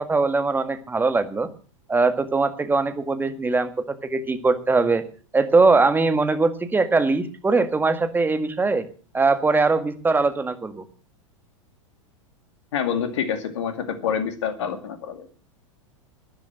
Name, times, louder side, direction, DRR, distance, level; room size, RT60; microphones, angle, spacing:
voice 1, 0.0-1.5 1.9-5.0 5.3-8.8 9.1-10.8, right 3 dB, 10° right, 10 dB, 1.7 m, -21 dB
voice 2, 12.7-15.3, left 7 dB, 65° left, 9 dB, 2.4 m, -27 dB
12.5 x 10.5 x 7.8 m, 0.41 s
figure-of-eight pair, 90°, 17 cm